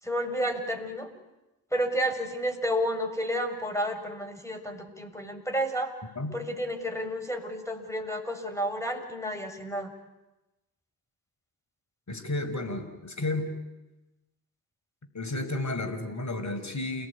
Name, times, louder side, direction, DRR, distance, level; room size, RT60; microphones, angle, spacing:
voice 1, 0.0-1.1 1.7-5.9 6.3-9.9, equal, 5° left, 5 dB, 6.6 m, -31 dB
voice 2, 12.1-13.5 15.1-17.1, left 2 dB, 35° left, 9 dB, 5.6 m, -32 dB
28.5 x 19.5 x 9.8 m, 1.0 s
hypercardioid pair, 45°, 48 cm